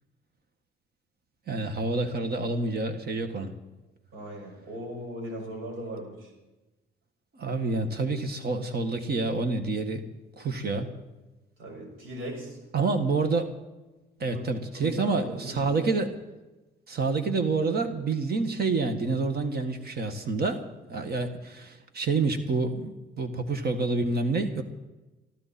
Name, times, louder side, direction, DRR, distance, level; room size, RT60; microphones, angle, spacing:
voice 1, 1.5-3.5 7.3-10.0 10.4-10.9 12.7-13.5 14.2-16.1 16.9-20.6 20.9-24.6, right 3 dB, 55° right, 7 dB, 1.7 m, -28 dB
voice 2, 4.1-6.3 11.6-12.6 14.2-15.8, equal, 80° right, 1 dB, 6.2 m, -38 dB
23.5 x 13.5 x 4.3 m, 1.1 s
cardioid pair, 90°, 20 cm